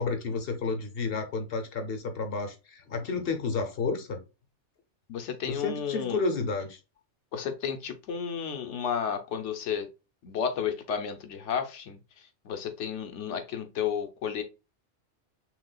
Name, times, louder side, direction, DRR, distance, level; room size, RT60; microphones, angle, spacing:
voice 1, 0.0-4.2 5.5-6.8, left 4 dB, 55° left, 1.0 m, -31 dB
voice 2, 5.1-6.2 7.3-9.9 10.2-12.0 12.4-14.4, left 7 dB, 75° left, 1.1 m, -32 dB
6.0 x 2.4 x 2.3 m
omnidirectional pair, 1.2 m